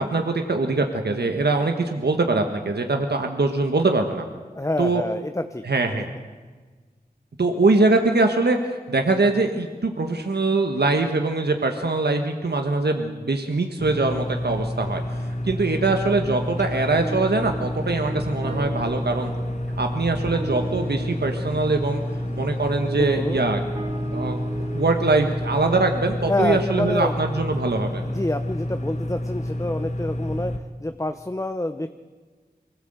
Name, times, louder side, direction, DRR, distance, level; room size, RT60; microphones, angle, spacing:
voice 1, 0.0-4.3 4.8-5.0 5.6-6.1 7.4-19.3 19.8-22.0 22.4-23.6 24.1-24.4 24.7-28.0, right 3 dB, 85° right, 4 dB, 1.5 m, -23 dB
voice 2, 4.6-5.6 23.0-23.4 26.3-27.2 28.0-31.9, left 1 dB, 20° left, 8 dB, 0.8 m, -27 dB
sound 1, 13.8-30.6, left 1 dB, 45° left, 1.6 m, -29 dB
sound 2, 16.5-25.1, right 2 dB, 30° right, 3.5 m, -36 dB
24.0 x 17.0 x 8.0 m, 1.4 s
wide cardioid pair, 55°, 16 cm